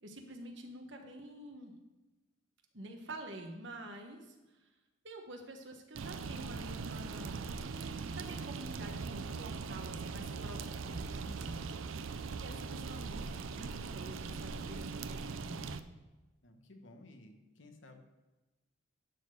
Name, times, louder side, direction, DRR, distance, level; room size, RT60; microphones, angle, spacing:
voice 1, 0.0-1.7 2.7-4.4 5.0-7.5 8.2-11.8 12.4-15.8, right 1 dB, 65° right, 3 dB, 1.3 m, -48 dB
sound 1, 6.0-15.8, right 4 dB, 85° right, 0.5 m, -41 dB
voice 2, 16.4-18.0, left 2 dB, 70° left, 5 dB, 1.1 m, -56 dB
11.5 x 4.2 x 6.6 m, 1.1 s
head